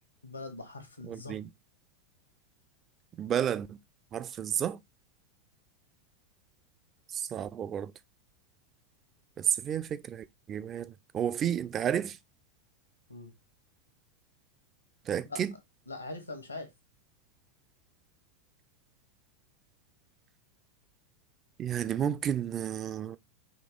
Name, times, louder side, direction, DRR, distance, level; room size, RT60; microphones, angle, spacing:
voice 1, 0.2-1.4 13.1-13.3 15.3-15.4 15.9-16.7, left 2 dB, 85° left, 1.1 m, -42 dB
voice 2, 1.0-1.5 3.1-3.8 4.1-4.8 7.1-7.9 9.4-12.2 15.1-15.5 21.6-23.2, right 9 dB, 25° right, 0.3 m, -31 dB
3.8 x 2.8 x 3.7 m
figure-of-eight pair, 90°, 0 cm